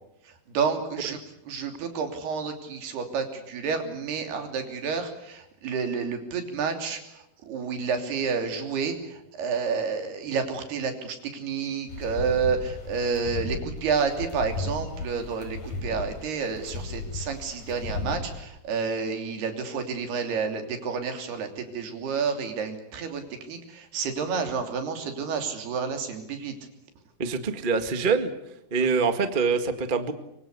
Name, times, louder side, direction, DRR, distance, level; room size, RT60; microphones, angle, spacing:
voice 1, 0.2-1.2 1.5-26.5 28.8-28.9, right 5 dB, 85° right, 5 dB, 5.1 m, -30 dB
sound 1, 11.9-18.4, left 3 dB, 55° left, 6.1 m, -35 dB
voice 2, 27.2-28.3 28.7-30.1, right 5 dB, 55° right, 8 dB, 0.5 m, -24 dB
24.5 x 24.5 x 8.4 m, 0.80 s
omnidirectional pair, 4.5 m